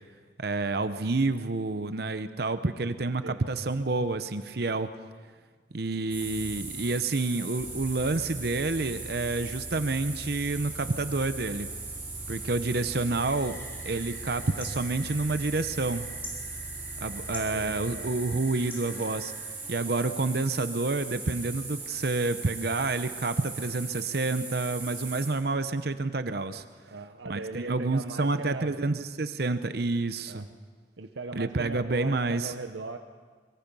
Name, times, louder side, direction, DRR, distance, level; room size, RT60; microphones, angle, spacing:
voice 1, 0.4-4.9 5.7-11.7 12.3-13.6 13.8-16.1 17.0-19.3 19.7-26.6 27.3-30.5 31.4-32.5, right 3 dB, 55° right, 11 dB, 0.8 m, -29 dB
sound 1, 6.1-25.3, right 3 dB, 10° right, 6.0 m, -39 dB
sound 2, 13.2-19.5, left 1 dB, 10° left, 3.2 m, -47 dB
voice 2, 17.3-18.1 26.9-28.8 30.3-30.5 31.0-33.0, right 3 dB, 85° right, 6 dB, 0.9 m, -39 dB
24.0 x 23.0 x 5.5 m, 1.5 s
head